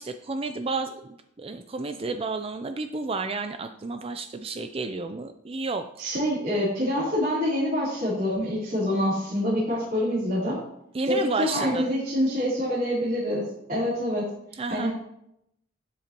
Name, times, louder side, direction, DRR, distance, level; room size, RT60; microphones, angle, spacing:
voice 1, 0.0-5.8 10.9-11.9 14.6-14.9, right 3 dB, 30° right, 8 dB, 0.4 m, -31 dB
voice 2, 6.0-10.6 11.0-14.3 14.7-14.9, equal, 45° right, -11 dB, 3.5 m, -26 dB
12.0 x 8.1 x 3.0 m, 0.75 s
head